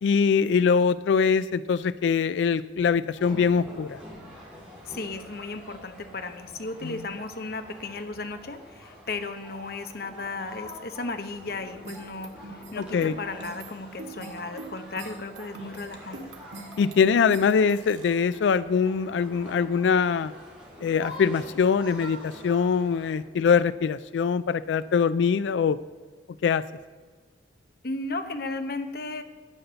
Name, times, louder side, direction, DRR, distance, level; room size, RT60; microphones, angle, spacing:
voice 1, 0.0-4.0 6.8-7.0 12.8-13.1 16.8-20.3 20.8-25.8 26.4-26.6, left 6 dB, 75° left, 15 dB, 0.3 m, -23 dB
sound 1, 3.2-23.1, left 1 dB, 10° right, 4.4 m, -46 dB
voice 2, 4.8-16.2 27.8-29.2, left 3 dB, 55° left, 8 dB, 1.0 m, -35 dB
sound 2, 11.8-18.1, right 2 dB, 90° right, 1.6 m, -42 dB
12.0 x 8.0 x 6.8 m, 1.4 s
head